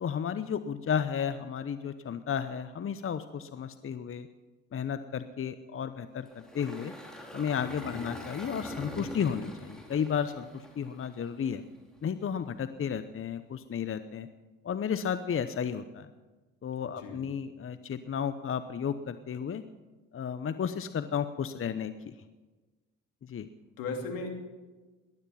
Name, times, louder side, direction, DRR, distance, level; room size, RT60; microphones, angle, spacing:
voice 1, 0.0-4.3 4.7-6.9 7.3-11.6 12.0-14.3 14.6-16.1 16.6-19.6 20.1-22.1 23.2-23.5, left 7 dB, 40° left, 11 dB, 0.8 m, -33 dB
Engine, 6.3-11.5, equal, ahead, 4.1 m, -44 dB
voice 2, 7.9-8.3 17.0-17.2 23.8-24.3, left 3 dB, 75° left, 3 dB, 3.0 m, -37 dB
18.0 x 12.0 x 5.7 m, 1.2 s
hypercardioid pair, 60°, 35 cm